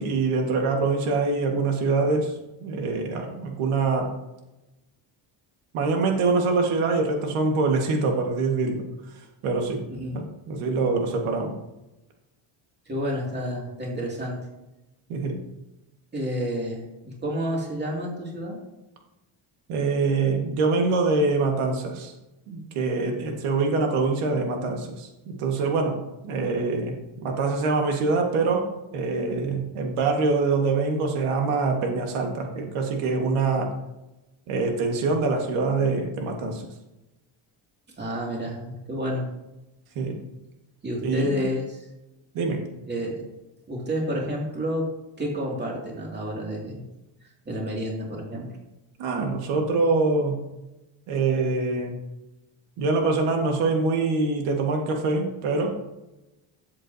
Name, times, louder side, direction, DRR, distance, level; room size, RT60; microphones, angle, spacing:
voice 1, 0.0-2.3 2.6-4.1 5.7-8.8 9.4-9.8 10.1-11.5 15.1-15.4 19.7-22.1 22.5-26.0 26.2-28.7 28.9-33.7 34.5-36.7 39.9-40.2 41.0-41.5 42.3-42.6 49.0-50.4 51.1-51.9 52.8-55.7, right 3 dB, 90° right, 2 dB, 1.7 m, -24 dB
voice 2, 12.9-14.4 16.1-18.6 38.0-38.6 38.9-39.3 40.8-41.9 42.9-43.2 43.7-44.9 45.2-46.8 47.5-48.5, equal, 20° right, -2 dB, 2.4 m, -30 dB
13.0 x 7.5 x 2.7 m, 0.97 s
cardioid pair, 140°, 49 cm